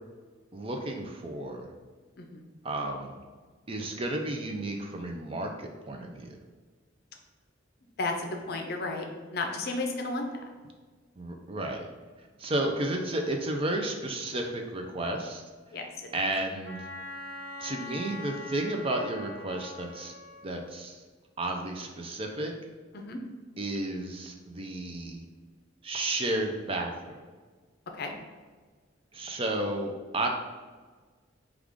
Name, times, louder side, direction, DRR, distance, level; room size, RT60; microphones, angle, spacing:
voice 1, 0.5-1.7 2.6-3.2 3.7-6.4 11.2-11.9 12.4-15.4 16.1-16.8 17.6-20.1 20.4-21.0 21.4-22.6 23.6-25.2 25.8-27.2 29.1-30.3, right 1 dB, 30° right, 2 dB, 0.4 m, -32 dB
voice 2, 8.0-9.1 9.3-10.4 15.7-16.1 22.9-23.2 27.9-28.1, left 2 dB, 55° left, 3 dB, 0.6 m, -33 dB
Wind instrument woodwind instrument, 16.7-20.5, left 2 dB, 15° left, 1.1 m, -43 dB
4.8 x 2.4 x 3.6 m, 1.4 s
head